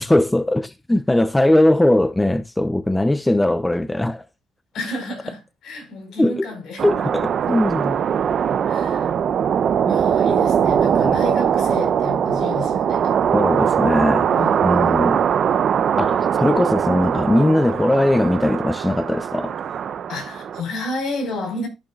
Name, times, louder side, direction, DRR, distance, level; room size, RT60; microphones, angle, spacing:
voice 1, 0.0-4.2 6.2-6.5 6.8-8.0 10.9-11.2 13.3-14.3 14.6-15.2 16.0-19.6, left 1 dB, 10° left, 0.7 m, -19 dB
voice 2, 4.7-6.9 8.7-9.1 9.8-13.1 14.3-14.6 20.1-21.7, left 2 dB, 70° left, 4.9 m, -31 dB
sound 1, 6.8-20.6, right 8 dB, 60° right, 0.7 m, -21 dB
14.0 x 6.9 x 2.4 m
cardioid pair, 90°, 0 cm